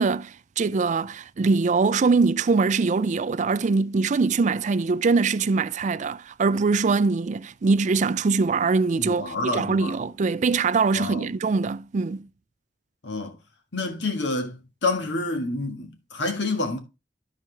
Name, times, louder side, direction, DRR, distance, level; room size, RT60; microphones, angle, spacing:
voice 1, 0.0-12.3, right 4 dB, 40° right, 0.4 m, -23 dB
voice 2, 9.0-10.0 10.9-11.3 13.0-13.4 13.7-16.8, left 2 dB, 70° left, 1.6 m, -28 dB
13.0 x 4.4 x 3.4 m
head